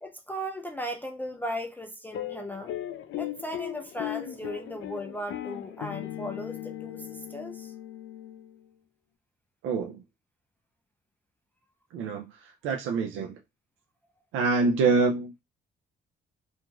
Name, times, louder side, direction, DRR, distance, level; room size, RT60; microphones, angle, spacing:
voice 1, 0.0-2.7 3.2-7.7, equal, 10° left, 0.4 m, -37 dB
sound 1, 2.1-8.7, left 12 dB, 80° left, 0.5 m, -38 dB
voice 2, 9.6-10.0 11.9-13.4 14.3-15.3, right 4 dB, 90° right, 0.4 m, -26 dB
2.9 x 2.5 x 2.3 m
cardioid pair, 90°, 20 cm